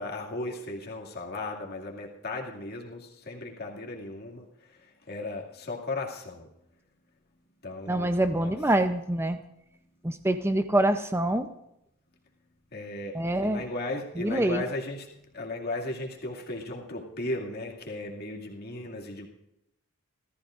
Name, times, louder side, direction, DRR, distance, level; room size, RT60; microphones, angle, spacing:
voice 1, 0.0-4.4 5.1-6.5 7.6-8.5 12.7-15.0 15.3-19.3, left 2 dB, 45° left, -1 dB, 2.3 m, -36 dB
voice 2, 7.9-9.4 10.0-11.5 13.1-13.6 14.2-14.6, right 1 dB, 10° right, 8 dB, 0.6 m, -25 dB
28.5 x 14.5 x 2.6 m, 0.82 s
head